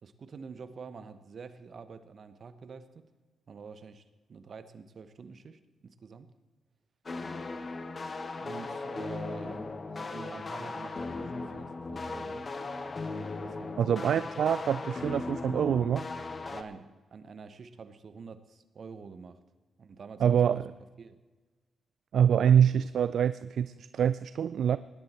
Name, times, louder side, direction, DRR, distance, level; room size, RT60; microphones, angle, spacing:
voice 1, 0.0-3.0 3.5-4.0 4.3-6.3 8.4-12.5 13.4-14.5 16.5-19.4 19.8-20.6 21.0-21.2, right 5 dB, 55° right, 11 dB, 1.1 m, -47 dB
sound 1, 7.1-16.6, left 3 dB, 40° left, 1.1 m, -37 dB
voice 2, 13.8-16.1 20.2-20.6 22.1-24.8, right 8 dB, 70° right, 15 dB, 0.3 m, -25 dB
19.5 x 11.0 x 4.4 m, 1.3 s
cardioid pair, 60°, 0 cm